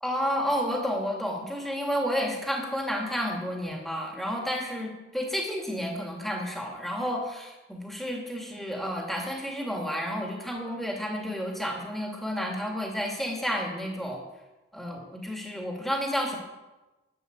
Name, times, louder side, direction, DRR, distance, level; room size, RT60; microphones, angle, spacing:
voice 1, 0.0-14.2 14.7-16.4, equal, ahead, 0 dB, 2.4 m, -31 dB
12.0 x 8.3 x 8.8 m, 1.1 s
head